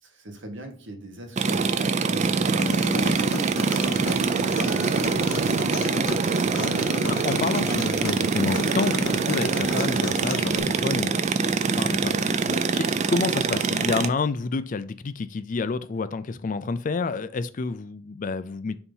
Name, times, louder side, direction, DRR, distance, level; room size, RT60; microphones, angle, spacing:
voice 1, 0.0-6.1, right 1 dB, 60° right, 1.3 m, -40 dB
sound 1, 1.4-14.1, right 4 dB, 35° right, 0.4 m, -24 dB
Human voice, 2.6-10.6, left 3 dB, 80° left, 0.7 m, -34 dB
voice 2, 6.8-18.8, left 4 dB, 40° left, 0.4 m, -29 dB
6.9 x 2.8 x 5.4 m
head